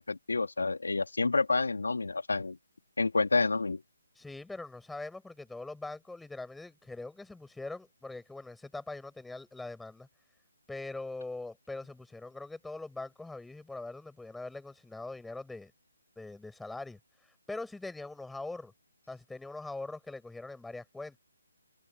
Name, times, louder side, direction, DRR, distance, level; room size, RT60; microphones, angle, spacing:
voice 1, 0.0-2.6 3.0-3.8, left 3 dB, 70° left, 2.4 m, -29 dB
voice 2, 4.2-10.1 10.7-15.7 16.2-18.7 19.1-21.1, left 2 dB, 5° left, 6.2 m, -42 dB
figure-of-eight pair, 145°, 0 cm